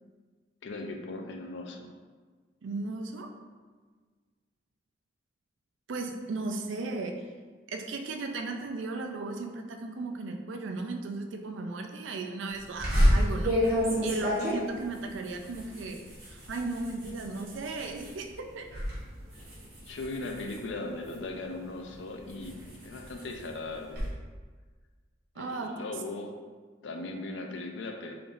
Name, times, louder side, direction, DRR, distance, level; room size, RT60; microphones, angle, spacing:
voice 1, 0.6-1.9 19.8-24.0 25.4-26.3 26.8-28.1, left 2 dB, 75° left, 3 dB, 0.5 m, -38 dB
voice 2, 2.6-3.3 5.9-7.1 7.7-13.6 14.0-18.7 25.4-25.7, right 3 dB, 90° right, 4 dB, 0.4 m, -36 dB
sound 1, 12.8-18.2 18.5-19.0 19.3-21.3 21.9-24.1, equal, 55° right, 1.3 m, -29 dB
3.8 x 3.3 x 2.5 m, 1.5 s
head